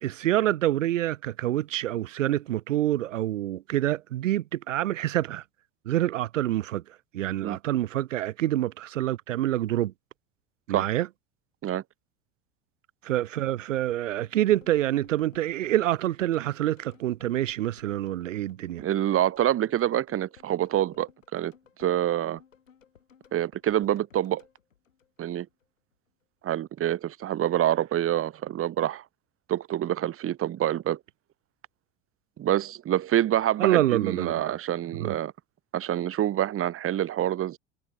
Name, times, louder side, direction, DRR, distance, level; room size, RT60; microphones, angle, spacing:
voice 1, 0.0-5.4 5.9-6.8 7.1-9.9 10.7-11.1 13.0-18.8 33.6-34.6 35.0-35.2, right 13 dB, 75° right, 1.2 m, -26 dB
sound 1, 13.5-25.7 25.9-26.0, left 7 dB, 85° left, 7.2 m, -58 dB
voice 2, 18.8-21.5 21.8-22.4 23.3-24.4 25.2-25.5 26.4-29.0 29.5-31.0 32.4-35.3 35.7-37.6, right 12 dB, 35° right, 1.6 m, -26 dB
figure-of-eight pair, 75°, 38 cm